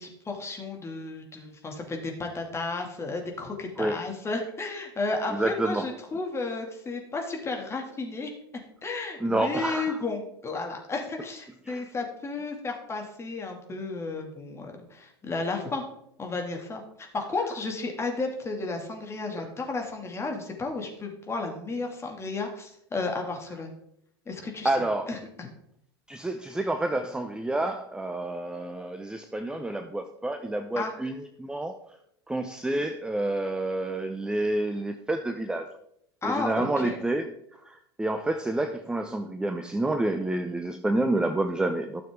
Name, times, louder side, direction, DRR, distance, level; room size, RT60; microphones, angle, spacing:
voice 1, 0.0-8.3 8.8-15.8 16.2-23.7 24.3-24.7 25.1-25.5 30.8-30.9 36.2-37.0, left 3 dB, 20° left, 2 dB, 2.4 m, -33 dB
voice 2, 5.3-5.9 9.2-10.0 11.7-11.8 24.6-25.1 26.1-31.8 32.3-35.7 36.2-37.3 37.6-42.0, right 2 dB, 5° right, 7 dB, 0.7 m, -29 dB
12.5 x 6.9 x 3.7 m, 0.74 s
figure-of-eight pair, 85°, 13 cm